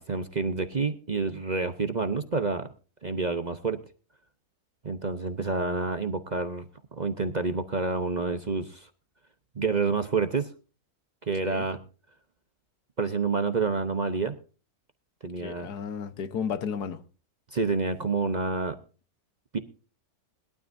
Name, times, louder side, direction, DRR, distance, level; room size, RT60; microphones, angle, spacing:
voice 1, 0.0-2.7 3.0-3.8 4.8-6.6 7.0-8.9 9.5-10.5 11.3-11.8 13.0-14.3 15.2-15.7 17.5-18.8 19.5-19.6, right 4 dB, 35° right, 0.8 m, -28 dB
voice 2, 15.4-17.0, left 7 dB, 85° left, 1.6 m, -33 dB
21.0 x 12.5 x 2.6 m
omnidirectional pair, 1.7 m